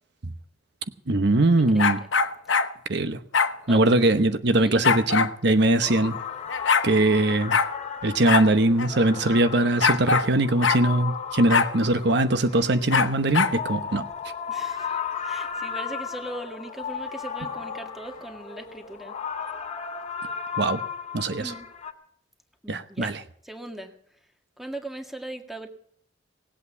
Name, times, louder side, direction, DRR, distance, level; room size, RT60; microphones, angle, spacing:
voice 1, 1.1-2.0 2.9-3.2 3.7-6.2 6.8-7.6 8.0-14.0 20.6-20.8 21.1-21.5 22.7-23.2, right 2 dB, 65° right, 1.0 m, -21 dB
sound 1, 1.8-2.7 3.3-3.5 4.8-5.3 6.2-6.3 6.5-6.9 7.5-7.7 8.3-8.5 8.8-8.9 9.8-10.3 10.6-10.8 11.5-11.7 12.9-13.6, left 5 dB, 80° left, 1.1 m, -22 dB
sound 2, 5.6-21.9, left 6 dB, 40° left, 2.6 m, -35 dB
voice 2, 14.5-14.9 15.2-19.2 21.4-21.7 22.6-23.1 23.4-23.9 24.6-25.7, right 1 dB, ahead, 1.9 m, -38 dB
19.0 x 8.4 x 8.1 m
head